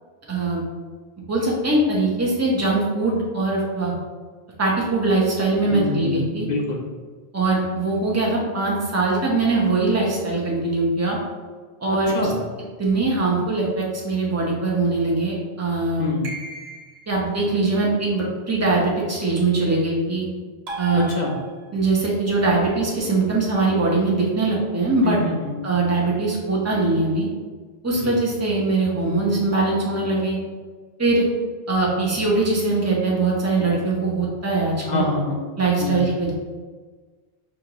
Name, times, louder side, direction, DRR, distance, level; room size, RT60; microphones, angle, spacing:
voice 1, 0.3-0.6 1.3-3.9 4.6-6.5 7.3-11.2 11.8-12.3 12.8-16.1 17.1-20.2 20.8-21.1 21.7-25.2 25.6-27.3 27.8-30.4 31.0-31.2 31.7-35.0 35.6-36.3, right 3 dB, 15° right, -4 dB, 0.8 m, -21 dB
voice 2, 5.7-6.8 12.1-12.4 16.0-16.3 21.0-21.4 25.0-25.6 27.9-28.2 34.8-35.4 35.8-36.1, left 2 dB, 50° left, -1 dB, 0.7 m, -26 dB
sound 1, 16.2-17.2 20.7-21.9, right 1 dB, 70° right, 1.2 m, -35 dB
6.2 x 2.5 x 3.0 m, 1.4 s
omnidirectional pair, 1.1 m